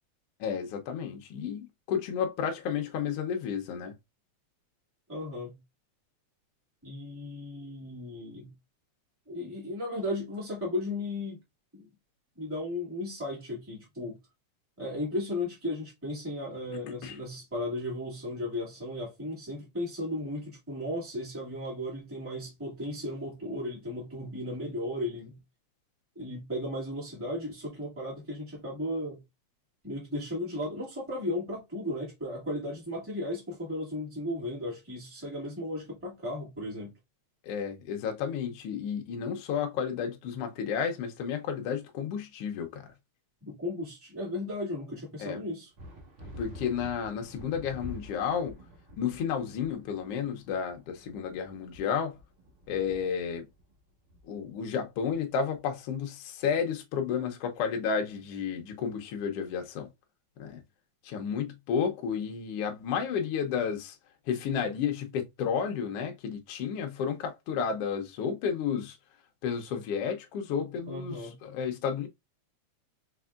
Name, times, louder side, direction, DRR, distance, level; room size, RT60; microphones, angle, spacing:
voice 1, 0.4-3.9 17.0-17.2 37.4-42.9 45.2-45.4 46.4-48.6 49.0-52.1 52.7-53.4 54.3-59.9 60.4-60.6 61.0-64.0 64.3-69.0 69.4-72.1, left 7 dB, 75° left, 1.4 m, -32 dB
voice 2, 5.1-5.5 6.8-8.5 9.3-11.4 11.7-11.9 12.3-14.2 14.8-25.4 26.1-29.2 29.8-36.9 43.4-45.7 70.9-71.4, left 1 dB, 5° right, 1.6 m, -35 dB
sound 1, 45.8-55.7, left 1 dB, 50° right, 2.0 m, -48 dB
4.7 x 4.3 x 2.4 m
omnidirectional pair, 3.6 m